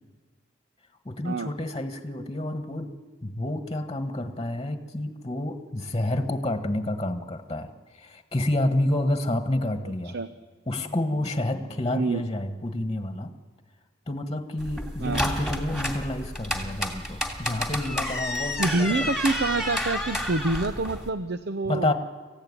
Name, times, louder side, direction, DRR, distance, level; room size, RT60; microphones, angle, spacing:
voice 1, 1.0-2.9 3.2-10.1 10.7-13.3 14.1-18.9 21.6-21.9, left 1 dB, 25° left, 8 dB, 1.5 m, -29 dB
voice 2, 11.9-12.2 15.0-15.2 18.6-21.9, right 2 dB, 60° right, 11 dB, 0.8 m, -27 dB
sound 1, 14.6-21.1, left 1 dB, 5° right, 2.8 m, -30 dB
25.5 x 15.5 x 9.8 m, 1.5 s
head